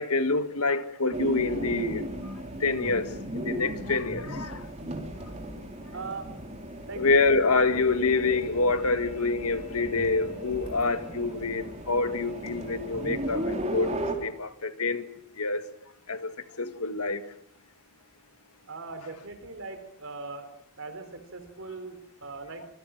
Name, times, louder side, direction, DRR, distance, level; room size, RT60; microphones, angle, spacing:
voice 1, 0.0-2.1 2.6-4.6 7.0-15.1 15.4-15.6 16.1-16.3 16.6-17.2, left 3 dB, 85° left, 1.8 m, -26 dB
sound 1, 1.1-14.1, right 1 dB, 30° right, 4.0 m, -36 dB
voice 2, 5.9-6.3 6.9-7.1 18.7-20.5 20.8-22.7, right 3 dB, 65° right, 4.1 m, -40 dB
26.0 x 23.5 x 6.1 m
head